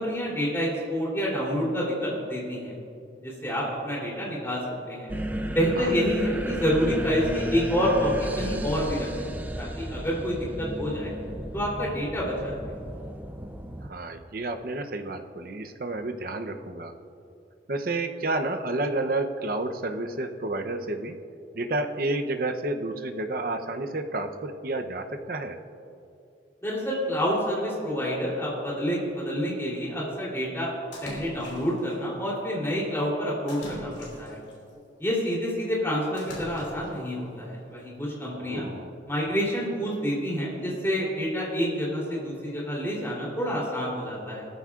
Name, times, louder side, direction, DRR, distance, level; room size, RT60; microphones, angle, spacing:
voice 1, 0.0-2.7 3.2-4.6 4.9-5.1 5.5-9.3 9.6-11.1 11.5-12.5 26.6-30.7 31.0-34.4 35.0-38.7 39.1-44.4, equal, 15° left, -5 dB, 3.2 m, -28 dB
sound 1, 5.1-13.9, right 1 dB, 10° right, 0.5 m, -34 dB
voice 2, 13.8-16.9 17.7-21.2 21.5-25.6 38.2-38.9, right 2 dB, 50° right, 6 dB, 0.7 m, -30 dB
Splash splatter, 30.9-31.9 33.5-34.6 36.2-37.0, left 1 dB, 75° left, 2.9 m, -41 dB
19.0 x 13.5 x 2.5 m, 2.7 s
head